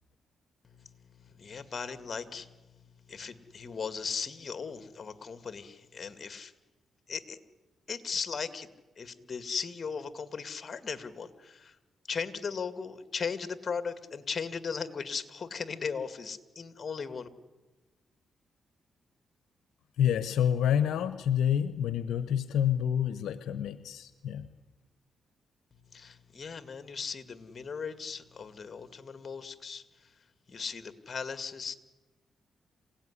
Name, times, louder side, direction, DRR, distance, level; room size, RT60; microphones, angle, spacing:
voice 1, 0.6-6.5 7.1-7.4 7.9-8.7 9.0-11.8 12.1-17.3 25.9-29.8 30.5-31.8, left 5 dB, 45° left, 11 dB, 2.0 m, -37 dB
voice 2, 20.0-24.5, left 9 dB, 85° left, 13 dB, 0.9 m, -28 dB
26.5 x 17.5 x 9.9 m, 1.2 s
cardioid pair, 75°, 0 cm